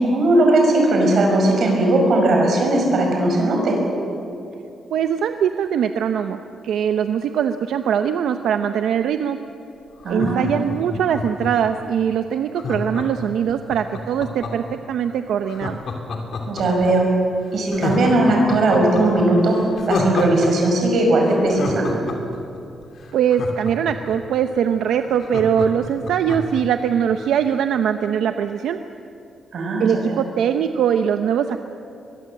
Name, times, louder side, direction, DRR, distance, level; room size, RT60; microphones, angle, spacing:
voice 1, 0.0-3.8 10.0-10.5 16.5-17.1 17.5-19.6 19.9-21.9 29.5-30.2, right 1 dB, 50° right, 1 dB, 5.7 m, -18 dB
voice 2, 4.9-9.4 10.1-15.8 23.1-28.8 29.8-31.6, right 8 dB, 85° right, 8 dB, 0.8 m, -21 dB
Laughter, 10.0-11.7 12.5-14.7 15.5-16.9 17.2-17.3 17.7-20.5 20.7-20.8 21.2-24.1 24.6-24.7 24.9-26.6 27.0-27.1, left 4 dB, 50° left, 2.8 m, -28 dB
23.0 x 22.5 x 7.7 m, 2.6 s
wide cardioid pair, 180°, 0 cm